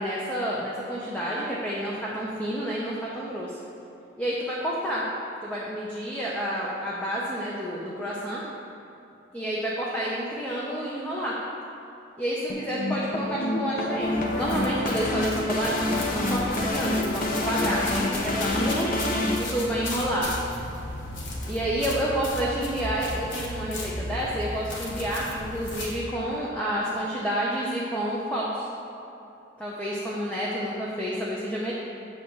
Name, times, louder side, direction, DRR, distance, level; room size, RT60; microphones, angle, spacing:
voice 1, 0.0-3.6 4.2-5.0 5.4-8.4 9.3-11.4 12.2-18.9 19.4-20.3 21.4-28.7 29.6-31.7, equal, 10° left, -7 dB, 0.8 m, -29 dB
sound 1, 12.5-19.4, left 1 dB, 45° left, 0.7 m, -27 dB
sound 2, 14.0-26.0, left 1 dB, 80° left, 1.2 m, -35 dB
8.1 x 4.1 x 6.7 m, 2.9 s
head